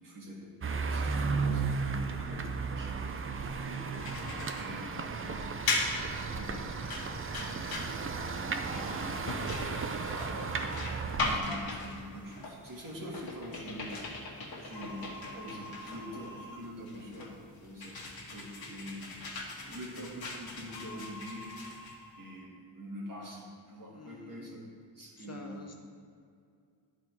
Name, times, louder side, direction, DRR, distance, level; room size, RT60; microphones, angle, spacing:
voice 1, 0.0-13.9 14.3-18.0 18.3-19.2 19.7-21.9 22.1-24.6 24.9-25.6, equal, 50° right, -3 dB, 1.8 m, -46 dB
sound 1, 0.6-11.4, right 4 dB, 30° right, 0.4 m, -34 dB
sound 2, 4.0-22.4, left 2 dB, 55° left, 1.4 m, -39 dB
voice 2, 9.8-10.4 23.9-24.6 25.2-25.7, left 3 dB, 35° left, 1 dB, 0.7 m, -49 dB
11.0 x 4.1 x 4.6 m, 2.3 s
wide cardioid pair, 125°, 43 cm